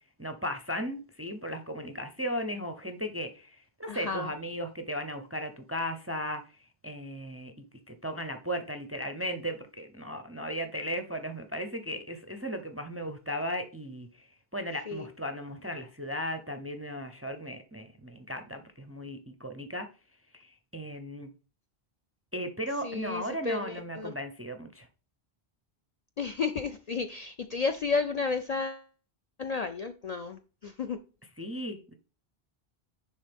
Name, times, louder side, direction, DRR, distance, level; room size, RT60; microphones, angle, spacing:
voice 1, 0.2-6.4 6.8-7.5 7.9-19.9 20.3-21.3 22.3-24.9 31.4-31.9, equal, 20° right, 0.4 m, -36 dB
voice 2, 3.9-4.3 14.9-15.1 22.8-24.1 26.2-28.8 29.4-31.0, left 4 dB, 55° left, 0.4 m, -32 dB
10.0 x 3.7 x 3.4 m
omnidirectional pair, 1.1 m